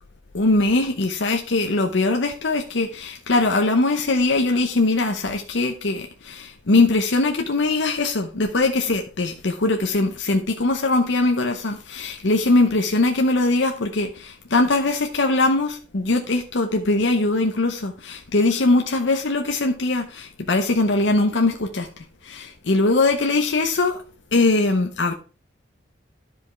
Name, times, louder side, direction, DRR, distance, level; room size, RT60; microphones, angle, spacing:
voice 1, 0.3-21.9 22.2-24.0 24.3-25.1, left 2 dB, 65° left, 0.8 m, -21 dB
11.0 x 5.2 x 4.4 m
head